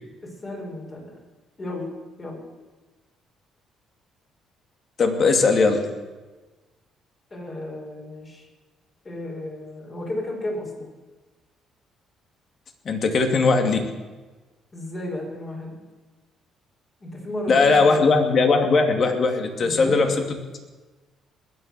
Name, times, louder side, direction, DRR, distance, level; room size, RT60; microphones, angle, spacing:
voice 1, 0.2-1.2 1.6-2.5 7.3-8.5 9.0-10.9 14.7-15.8 17.0-17.9 19.6-20.3, left 1 dB, 35° left, -1 dB, 5.7 m, -33 dB
voice 2, 5.0-5.9 12.9-13.8 17.5-20.1, left 4 dB, 50° left, 5 dB, 2.4 m, -19 dB
21.0 x 7.8 x 6.8 m, 1.2 s
cardioid pair, 80°, 0 cm